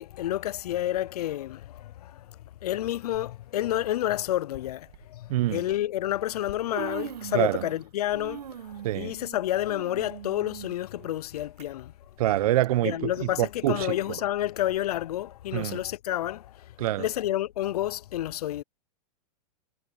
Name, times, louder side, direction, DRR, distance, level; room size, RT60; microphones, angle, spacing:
voice 1, 0.0-11.9 12.8-16.7 17.0-18.6, left 13 dB, 80° left, 0.5 m, -30 dB
Human voice, 2.9-3.1 4.2-4.3 4.9-5.1 6.1-6.2 6.5-7.9 8.1-11.6 12.1-12.2 13.0-13.1, right 10 dB, 85° right, 1.7 m, -41 dB
voice 2, 5.3-5.6 7.3-7.6 8.8-9.1 12.2-14.0 15.5-15.8 16.8-17.1, right 14 dB, 65° right, 0.8 m, -26 dB
hypercardioid pair, 140°, 20 cm